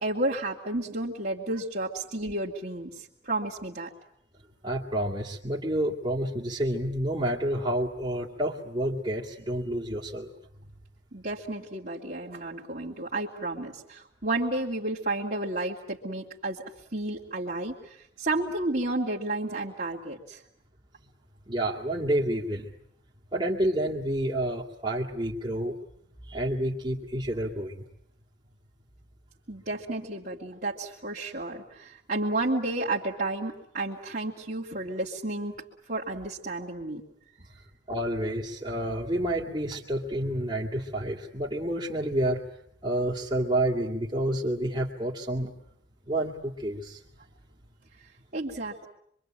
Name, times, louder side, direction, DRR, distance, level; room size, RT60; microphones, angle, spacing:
voice 1, 0.0-3.9 11.1-16.6 16.9-20.4 29.5-35.5 35.9-37.0 48.3-48.9, right 2 dB, 45° right, -6 dB, 2.7 m, -32 dB
voice 2, 4.6-10.3 21.5-22.7 23.3-25.8 26.3-27.8 37.9-42.4 42.8-45.5 46.1-47.0, right 1 dB, 25° right, -7 dB, 2.5 m, -29 dB
26.0 x 24.5 x 9.0 m, 0.72 s
head